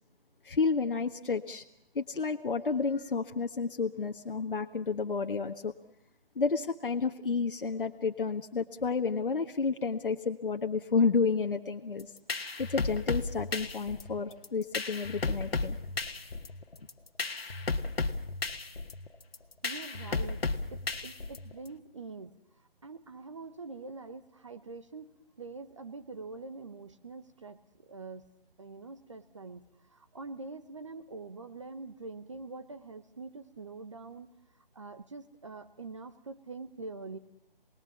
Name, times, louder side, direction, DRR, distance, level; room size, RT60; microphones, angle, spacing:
voice 1, 0.4-1.6 1.9-5.7 6.3-12.1 12.6-15.8, left 4 dB, 65° left, 4 dB, 1.5 m, -31 dB
sound 1, 12.0-21.7, left 3 dB, 90° left, 1.9 m, -34 dB
voice 2, 19.6-20.5 20.7-22.3 22.8-27.6 27.9-28.3 28.6-34.3 34.7-37.2, right 3 dB, 30° right, 9 dB, 1.0 m, -44 dB
28.5 x 20.5 x 7.2 m, 0.79 s
hypercardioid pair, 170°, 29 cm